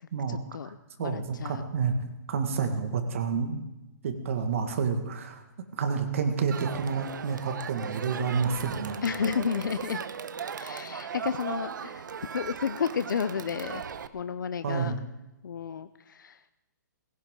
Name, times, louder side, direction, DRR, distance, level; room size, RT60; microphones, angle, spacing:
voice 1, 0.3-0.7 1.0-1.6 9.0-10.0 10.6-12.1 12.3-13.8 14.1-14.9 15.4-16.4, left 7 dB, 80° left, 12 dB, 0.6 m, -32 dB
voice 2, 1.0-1.9 2.3-3.6 4.0-5.4 5.8-9.0 14.6-15.0, right 5 dB, 45° right, 6 dB, 1.8 m, -29 dB
Crowd, 6.5-14.1, right 7 dB, 75° right, 0.9 m, -38 dB
19.0 x 17.0 x 3.8 m, 0.97 s
hypercardioid pair, 175°, 10 cm